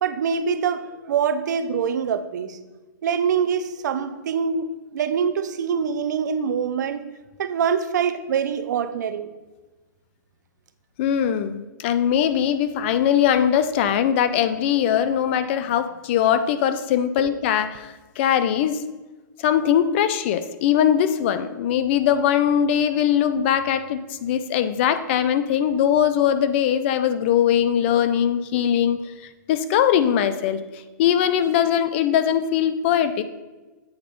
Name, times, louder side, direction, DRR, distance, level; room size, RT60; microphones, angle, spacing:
voice 1, 0.0-2.6 3.0-7.0 7.4-9.3 17.2-17.3, right 7 dB, 60° right, 12 dB, 0.6 m, -24 dB
voice 2, 11.0-18.8 19.4-29.0 29.5-33.2, left 9 dB, 35° left, 12 dB, 0.4 m, -21 dB
8.0 x 4.3 x 5.2 m, 1.2 s
hypercardioid pair, 155°, 11 cm